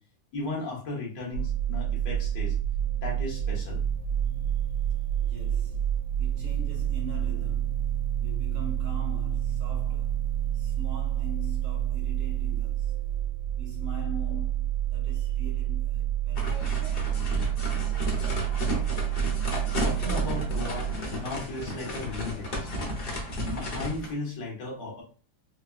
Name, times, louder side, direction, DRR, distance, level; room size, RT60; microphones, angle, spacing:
voice 1, 0.3-2.6 3.0-3.8 19.8-20.9 21.2-22.9 23.4-25.0, left 2 dB, 70° left, 1.8 m, -36 dB
sound 1, 1.3-20.9, right 11 dB, 80° right, 1.4 m, -29 dB
voice 2, 4.4-5.9 6.2-10.2 10.5-13.0 13.5-16.7, right 2 dB, 60° right, 0.9 m, -43 dB
sound 2, 16.4-24.1, left 1 dB, 40° left, 0.9 m, -33 dB
5.1 x 2.3 x 2.3 m
omnidirectional pair, 2.0 m